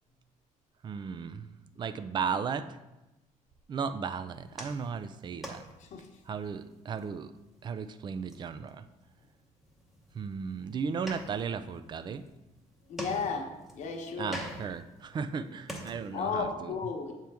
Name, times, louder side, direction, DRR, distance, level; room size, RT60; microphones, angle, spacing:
voice 1, 0.8-2.8 3.7-5.6 6.3-7.3 7.6-8.9 10.1-12.2 14.2-16.9, right 6 dB, 35° right, 12 dB, 0.3 m, -35 dB
sound 1, 4.3-16.4, equal, ahead, 0.8 m, -46 dB
voice 2, 12.9-13.5 13.7-14.4 16.1-17.1, left 5 dB, 65° left, 2 dB, 1.0 m, -33 dB
7.5 x 4.5 x 3.5 m, 1.0 s
cardioid pair, 140°, 13 cm